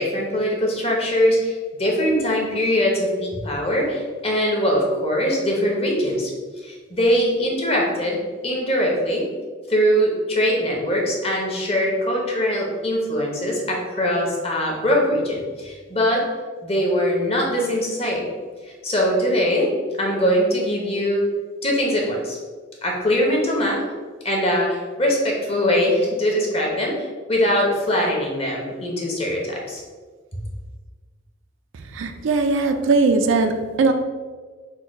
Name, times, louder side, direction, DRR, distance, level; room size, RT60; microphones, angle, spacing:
voice 1, 0.0-6.3 6.6-8.2 8.4-9.2 9.7-16.2 16.6-18.2 18.8-19.7 20.0-21.2 21.6-22.4 22.8-23.8 24.2-26.9 27.3-29.8, equal, 30° left, -1 dB, 0.8 m, -22 dB
voice 2, 31.9-33.9, right 3 dB, 75° right, 6 dB, 0.4 m, -19 dB
4.3 x 2.3 x 4.6 m, 1.5 s
head